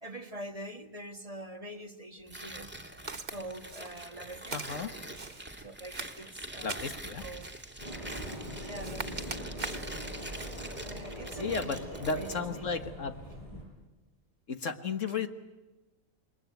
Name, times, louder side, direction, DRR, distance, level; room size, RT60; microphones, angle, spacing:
voice 1, 0.0-2.7 3.3-4.6 5.6-7.5 8.6-9.2 10.8-12.6 15.1-15.2, right 1 dB, 30° right, 7 dB, 1.5 m, -44 dB
Tearing, 2.3-12.4, right 1 dB, 10° right, 2.5 m, -44 dB
Walk footsteps, 3.1-3.4 3.7-4.1 4.5-5.5 5.9-7.0 7.4-7.7 8.1-8.5 8.8-9.9 10.4-10.6, right 4 dB, 45° right, 1.6 m, -42 dB
voice 2, 4.5-4.9 6.6-7.2 11.4-13.1 14.5-15.3, left 5 dB, 70° left, 8 dB, 1.9 m, -34 dB
sound 1, 7.8-13.6, equal, 25° left, 8.3 m, -42 dB
27.5 x 21.5 x 9.3 m, 1.1 s
omnidirectional pair, 1.4 m